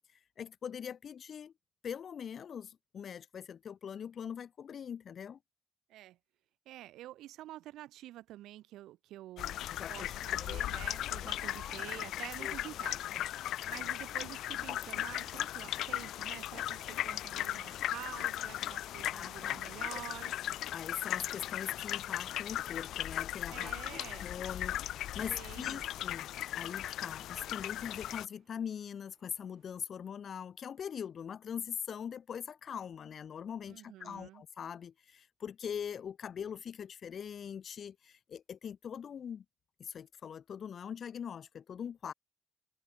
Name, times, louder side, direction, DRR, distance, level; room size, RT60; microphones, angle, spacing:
voice 1, 0.1-1.5 1.8-5.4 9.7-10.2 10.5-10.6 11.2-11.8 12.4-12.6 19.1-20.0 20.7-26.3 26.6-39.5 39.8-42.1, left 8 dB, 55° left, 1.7 m, -42 dB
voice 2, 6.7-9.6 9.9-20.3 23.5-24.2 25.3-25.9 33.7-34.4, right 14 dB, 85° right, 0.9 m, -48 dB
sound 1, 9.4-28.3, left 13 dB, 80° left, 0.3 m, -37 dB
sound 2, 10.1-29.8, right 8 dB, 60° right, 6.9 m, -70 dB
cardioid pair, 90°, 0 cm